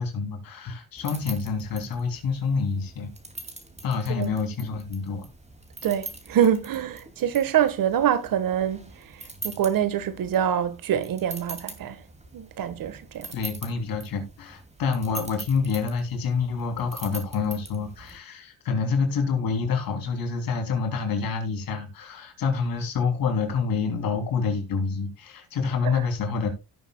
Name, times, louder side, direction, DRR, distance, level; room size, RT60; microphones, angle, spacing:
voice 1, 0.0-3.1 3.8-5.3 13.3-26.5, left 5 dB, 70° left, 3.2 m, -27 dB
sound 1, 1.0-18.2, right 2 dB, 20° right, 2.4 m, -43 dB
voice 2, 5.8-8.9 9.4-12.0 12.3-13.3, right 9 dB, 65° right, 1.4 m, -25 dB
17.0 x 6.7 x 2.3 m
cardioid pair, 105°, 36 cm